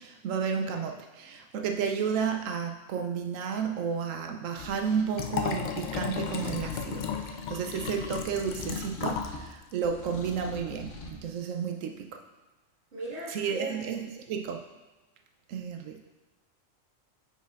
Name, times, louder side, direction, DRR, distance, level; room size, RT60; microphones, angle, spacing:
voice 1, 0.0-12.2 13.3-14.6 15.5-16.0, right 6 dB, 80° right, 4 dB, 0.9 m, -32 dB
sound 1, 4.6-5.1 6.1-7.2 7.8-9.5 9.8-11.2, left 2 dB, 70° left, 1.2 m, -43 dB
Liquid, 5.1-9.4 9.7-9.8, left 7 dB, 90° left, 0.4 m, -34 dB
voice 2, 12.9-13.7, right 3 dB, 60° right, -11 dB, 2.1 m, -37 dB
9.4 x 5.7 x 2.4 m, 1.1 s
omnidirectional pair, 1.4 m